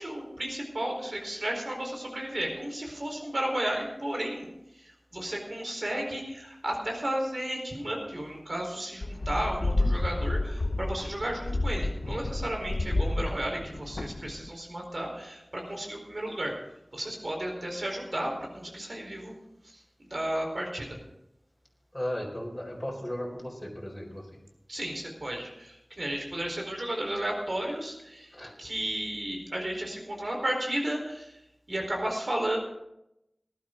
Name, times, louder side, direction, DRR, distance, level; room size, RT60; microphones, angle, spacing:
voice 1, 0.0-4.4 4.7-16.5 16.9-19.3 19.6-19.8 20.1-21.0 24.7-28.3 28.6-31.4 31.7-32.6, right 1 dB, 70° right, 1 dB, 4.4 m, -33 dB
sound 1, 9.0-14.5, left 2 dB, 75° left, 0.7 m, -30 dB
voice 2, 21.9-24.4 28.3-28.5, left 1 dB, 15° left, -2 dB, 4.2 m, -36 dB
19.5 x 11.5 x 3.9 m, 0.84 s
wide cardioid pair, 55°, 0 cm